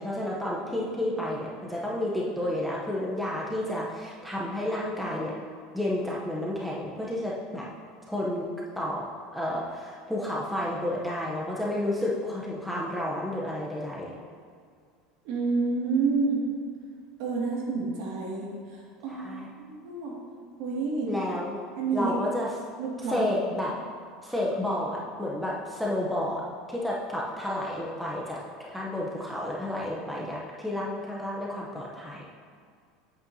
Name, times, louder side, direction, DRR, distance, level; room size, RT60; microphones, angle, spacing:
voice 1, 0.0-5.3 5.7-7.7 8.1-8.5 8.8-9.0 9.3-14.2 19.1-19.5 21.0-21.6 21.9-22.6 23.0-23.7 24.2-26.4 26.7-28.4 28.7-32.2, left 1 dB, ahead, -5 dB, 0.7 m, -31 dB
voice 2, 15.2-16.4 17.2-20.2 20.6-21.1 21.8-22.1 22.8-23.6, right 4 dB, 60° right, -4 dB, 2.1 m, -29 dB
8.5 x 8.2 x 2.7 m, 2.1 s
supercardioid pair, 160°, 0 cm